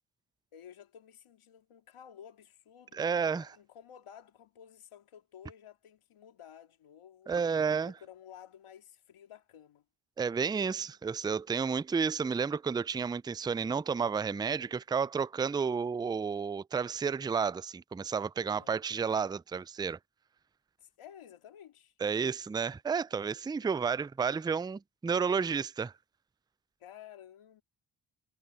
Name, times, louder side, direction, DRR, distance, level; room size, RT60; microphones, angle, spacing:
voice 1, 0.5-7.5 7.8-9.9 18.4-18.8 20.8-21.9 23.5-23.7 26.8-27.6, left 9 dB, 80° left, 2.3 m, -53 dB
voice 2, 2.9-3.5 7.3-7.9 10.2-20.0 22.0-25.9, right 6 dB, 10° right, 0.3 m, -31 dB
supercardioid pair, 45°, 50 cm